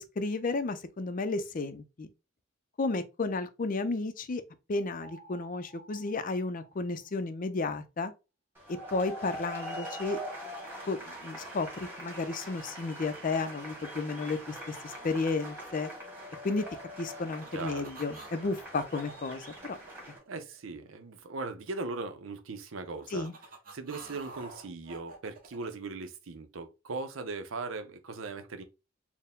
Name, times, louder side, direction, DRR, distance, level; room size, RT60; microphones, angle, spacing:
voice 1, 0.0-2.1 2.8-4.4 4.7-8.1 8.9-10.2 10.9-15.9 16.4-16.7 17.0-19.8 23.1-23.3, left 3 dB, 45° left, 0.5 m, -33 dB
sound 1, 5.0-7.5, right 2 dB, 65° right, 1.4 m, -54 dB
sound 2, 8.5-20.2, equal, 10° right, 1.6 m, -43 dB
sound 3, 16.8-18.4 18.7-20.9 22.7-25.7, right 3 dB, 45° right, 0.9 m, -48 dB
voice 2, 17.5-17.9 20.3-23.3 23.7-28.6, right 3 dB, 85° right, 0.6 m, -39 dB
4.4 x 2.1 x 3.6 m
head